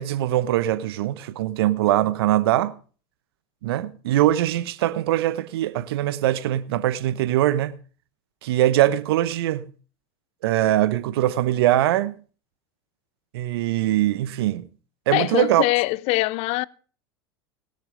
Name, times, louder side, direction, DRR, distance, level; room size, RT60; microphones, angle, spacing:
voice 1, 0.0-2.7 3.6-7.8 8.4-9.7 10.4-12.1 13.3-14.7 15.1-15.6, right 14 dB, 75° right, 0.9 m, -22 dB
voice 2, 15.1-16.6, left 21 dB, 55° left, 0.5 m, -23 dB
19.5 x 7.0 x 5.0 m
hypercardioid pair, 95°, 13 cm